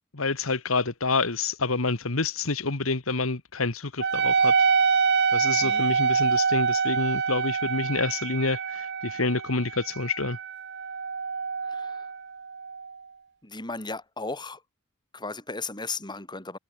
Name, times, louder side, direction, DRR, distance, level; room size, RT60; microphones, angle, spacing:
voice 1, 0.1-4.5 5.3-10.4, left 3 dB, 70° left, 1.7 m, -28 dB
Wind instrument woodwind instrument, 4.0-12.9, right 5 dB, 55° right, 1.2 m, -26 dB
voice 2, 11.6-12.1 13.4-14.6 15.1-16.6, left 3 dB, 20° left, 5.5 m, -36 dB
head